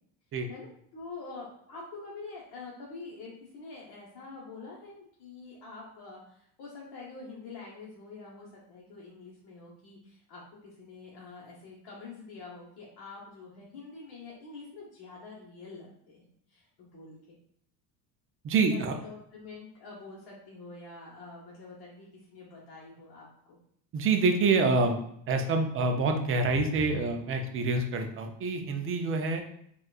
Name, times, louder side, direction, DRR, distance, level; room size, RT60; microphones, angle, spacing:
voice 1, 0.5-17.4 18.7-23.6 25.8-25.9, left 3 dB, 50° left, -5 dB, 1.0 m, -46 dB
voice 2, 18.4-18.9 23.9-25.0 25.3-29.4, right 3 dB, 30° right, 5 dB, 0.3 m, -26 dB
4.3 x 2.4 x 2.3 m, 0.69 s
supercardioid pair, 105°, 49 cm